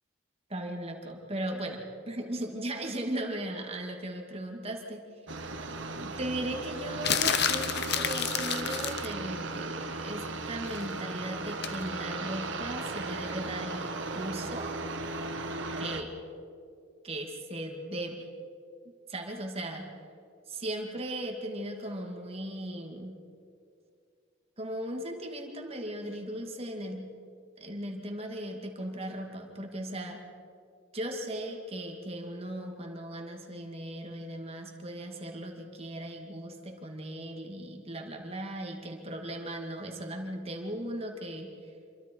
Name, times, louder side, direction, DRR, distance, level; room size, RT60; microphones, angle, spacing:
voice 1, 0.5-5.0 5.9-14.7 15.8-16.1 17.0-18.3 19.1-19.9 20.5-23.1 24.6-27.1 27.6-30.2 30.9-41.5, right 1 dB, 30° right, 2 dB, 2.3 m, -37 dB
sound 1, 5.3-16.0, right 3 dB, 60° right, 1.5 m, -36 dB
sound 2, 7.0-9.1 11.6-11.8, left 9 dB, 50° left, 0.9 m, -29 dB
27.5 x 24.0 x 4.6 m, 2.5 s
head